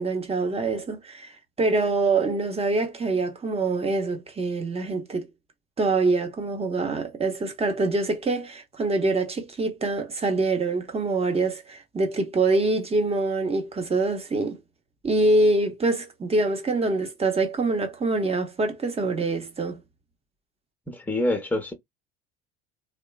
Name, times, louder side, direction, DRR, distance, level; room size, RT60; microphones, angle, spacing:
voice 1, 0.0-5.3 5.8-14.6 15.0-19.8, right 3 dB, 20° right, 1.0 m, -25 dB
voice 2, 20.9-21.7, left 1 dB, 5° left, 1.0 m, -26 dB
2.8 x 2.1 x 2.3 m
hypercardioid pair, 70°, 32 cm